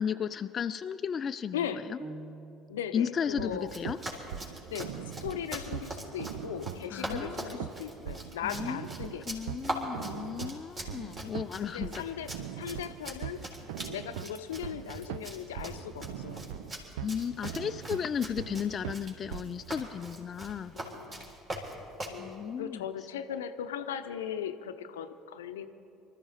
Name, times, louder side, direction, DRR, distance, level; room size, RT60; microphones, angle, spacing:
voice 1, 0.0-2.0 2.9-3.5 3.8-4.0 6.9-7.4 8.4-8.8 9.3-11.9 17.0-20.7 22.2-22.8, left 7 dB, 40° left, 10 dB, 0.4 m, -34 dB
voice 2, 1.5-1.8 2.7-3.8 4.7-9.3 11.6-13.4 13.9-16.4 20.7-21.3 22.1-25.7, left 9 dB, 75° left, 10 dB, 0.6 m, -38 dB
sound 1, 2.0-3.0, right 3 dB, 15° right, 1.0 m, -45 dB
sound 2, 3.3-19.8, right 10 dB, 70° right, 0.5 m, -42 dB
Run, 3.6-22.2, right 1 dB, 35° right, 3.6 m, -42 dB
25.0 x 13.5 x 4.1 m, 2.7 s
figure-of-eight pair, 60°, 0 cm